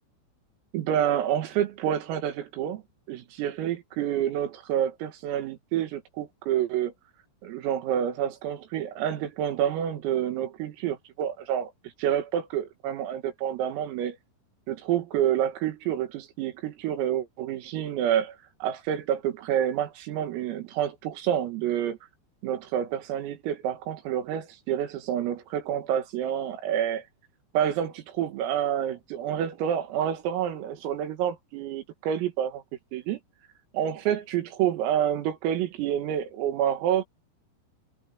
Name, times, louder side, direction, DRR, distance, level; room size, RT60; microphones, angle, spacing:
voice 1, 0.7-2.8 3.1-6.9 7.4-11.7 12.0-14.2 14.7-22.0 22.4-27.0 27.5-32.6 32.9-33.2 33.7-37.0, right 10 dB, 80° right, 4.9 m, -28 dB
omnidirectional pair, 6.0 m